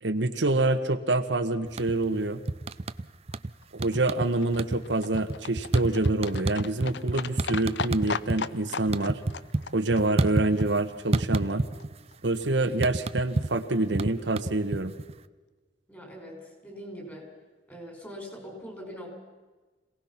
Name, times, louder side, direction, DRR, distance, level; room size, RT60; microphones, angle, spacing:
voice 1, 0.0-2.4 3.7-9.2 9.7-11.6 12.2-14.9, right 2 dB, 90° right, 7 dB, 1.3 m, -26 dB
sound 1, 1.7-2.2 2.5-3.5 3.8-4.3 4.5-8.4 8.7-10.8 11.1-12.0 12.2-15.1, right 2 dB, 35° right, 0.6 m, -28 dB
Livestock farm animals working animals, 3.3-11.5 11.8-11.9 12.1-12.2 12.4-12.5 12.7-12.8 13.0-13.1 13.4-13.5 13.7-13.8 14.0-14.1, left 5 dB, 70° left, 0.7 m, -38 dB
voice 2, 15.9-17.3 17.7-19.1, equal, 10° left, 1 dB, 6.0 m, -42 dB
27.0 x 18.0 x 5.9 m, 1.3 s
head